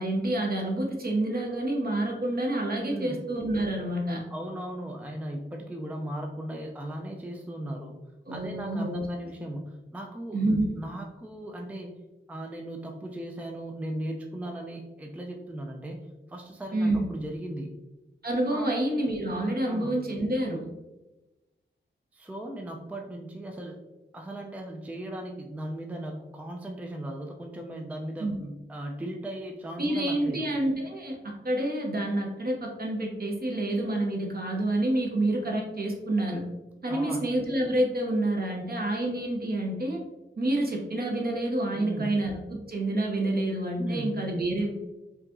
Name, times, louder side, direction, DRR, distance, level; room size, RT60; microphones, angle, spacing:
voice 1, 0.0-4.2 8.3-9.1 10.3-10.7 16.7-17.0 18.2-20.7 28.2-28.4 29.8-36.4 36.8-40.0 40.4-44.7, right 1 dB, 50° right, 1 dB, 0.9 m, -28 dB
voice 2, 2.8-3.2 4.3-7.9 8.3-12.0 12.3-17.7 18.5-18.7 19.7-20.0 22.1-23.8 24.1-30.5 36.9-37.3 41.7-42.1 43.8-44.3, right 1 dB, 5° right, 1 dB, 0.4 m, -37 dB
4.5 x 2.8 x 2.5 m, 1.0 s
wide cardioid pair, 95°, 21 cm